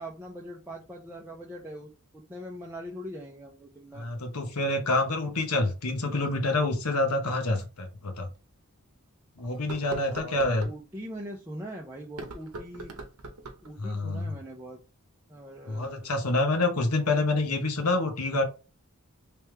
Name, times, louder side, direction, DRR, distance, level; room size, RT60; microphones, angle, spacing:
voice 1, 0.0-4.1 9.7-12.9 13.6-14.8 15.3-16.0, equal, 10° right, -2 dB, 0.5 m, -42 dB
voice 2, 3.9-8.3 9.4-10.7 13.8-14.3 15.7-18.4, left 2 dB, 90° left, 5 dB, 1.0 m, -27 dB
sound 1, 7.6-7.7 8.3-8.4 9.5-10.8 12.0-13.7, right 2 dB, 80° right, 0.8 m, -41 dB
3.3 x 3.2 x 3.3 m, 0.32 s
head